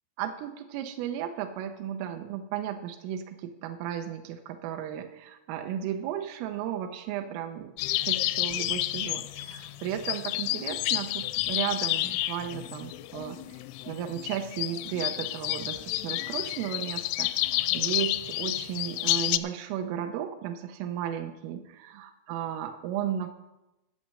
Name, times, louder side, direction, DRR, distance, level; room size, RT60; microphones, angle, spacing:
voice 1, 0.2-7.7 8.0-23.3, right 10 dB, 90° right, 5 dB, 3.3 m, -35 dB
sound 1, 7.8-19.4, left 17 dB, 85° left, 2.8 m, -30 dB
12.0 x 6.4 x 8.5 m, 0.94 s
omnidirectional pair, 5.8 m